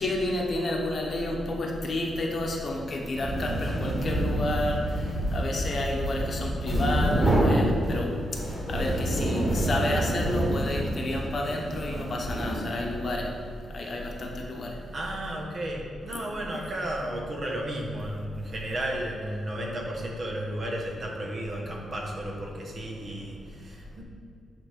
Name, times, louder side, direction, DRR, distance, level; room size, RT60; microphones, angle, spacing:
voice 1, 0.0-8.1 8.7-13.3 13.7-14.8 16.1-16.2, left 1 dB, 40° left, 0 dB, 1.1 m, -30 dB
sound 1, 3.1-13.0, right 1 dB, 5° right, 2.0 m, -28 dB
voice 2, 14.9-24.0, right 1 dB, 40° right, -1 dB, 1.3 m, -33 dB
9.4 x 3.6 x 5.8 m, 2.4 s
wide cardioid pair, 135°, 0 cm